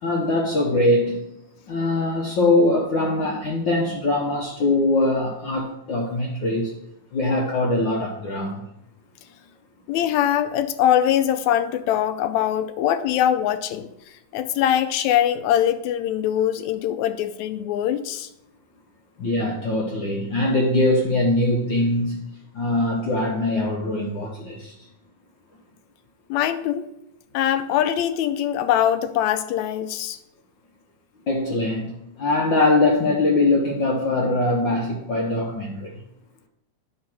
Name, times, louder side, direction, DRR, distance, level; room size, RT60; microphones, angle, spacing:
voice 1, 0.0-1.3 1.7-6.8 7.1-8.6 19.2-22.2 22.5-24.7 31.3-36.0, left 2 dB, 60° left, -1 dB, 1.2 m, -22 dB
voice 2, 9.9-13.9 14.3-18.3 26.3-26.9 27.3-30.2, left 10 dB, 80° left, 11 dB, 1.8 m, -22 dB
9.4 x 3.9 x 6.0 m, 0.81 s
omnidirectional pair, 3.3 m